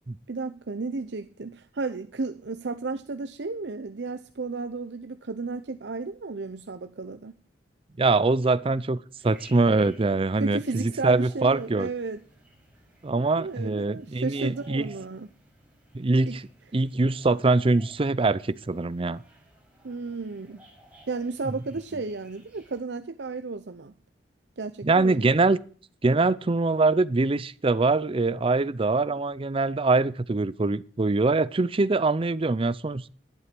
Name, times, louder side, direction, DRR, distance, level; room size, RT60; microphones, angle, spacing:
voice 1, 0.3-7.3 10.4-12.2 13.2-15.3 16.3-16.4 19.8-20.6 21.1-23.9 24.6-25.3, right 3 dB, 80° right, 0.7 m, -33 dB
voice 2, 8.0-11.9 13.0-14.9 15.9-16.4 16.7-19.2 24.8-25.6 26.0-33.1, right 3 dB, 30° right, 0.5 m, -23 dB
sound 1, 9.2-22.8, right 1 dB, 10° right, 5.8 m, -56 dB
11.5 x 11.0 x 6.1 m
head